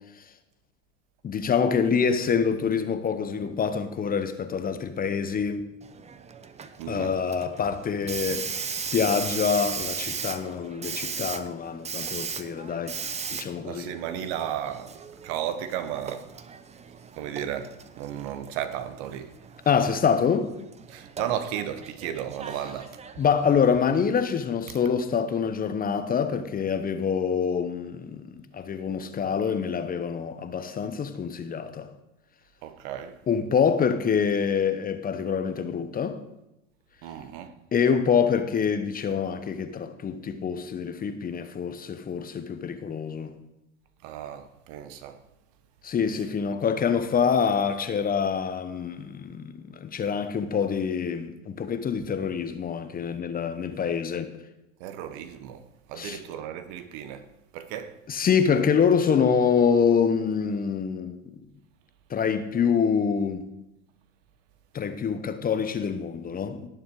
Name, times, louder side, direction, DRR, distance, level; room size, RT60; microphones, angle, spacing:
voice 1, 1.2-5.6 6.9-8.5 8.9-13.0 13.3-13.9 19.7-20.5 23.2-28.2 28.5-31.9 33.3-36.2 37.7-43.3 45.8-54.3 56.0-56.2 58.1-61.4 62.1-63.4 64.7-66.7, left 6 dB, 25° left, 1.0 m, -26 dB
Hiss, 5.8-24.2, right 6 dB, 20° right, 0.8 m, -38 dB
voice 2, 6.8-7.1 13.6-16.3 17.1-19.3 20.9-23.0 32.6-33.2 37.0-37.5 44.0-45.2 54.8-57.3 57.5-58.0, right 10 dB, 60° right, 1.4 m, -34 dB
18.0 x 7.2 x 4.8 m
supercardioid pair, 115°, 37 cm